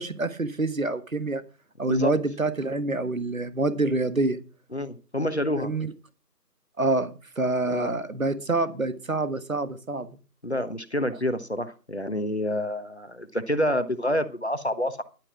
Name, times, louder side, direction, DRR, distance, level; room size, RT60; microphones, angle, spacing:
voice 1, 0.0-1.4 1.8-4.4 5.6-5.9 6.8-10.1, right 2 dB, 55° right, 12 dB, 1.5 m, -27 dB
voice 2, 4.7-5.7 7.7-7.9 10.4-15.0, left 1 dB, 40° left, 12 dB, 1.2 m, -28 dB
11.5 x 9.0 x 5.9 m, 0.34 s
figure-of-eight pair, 180°, 49 cm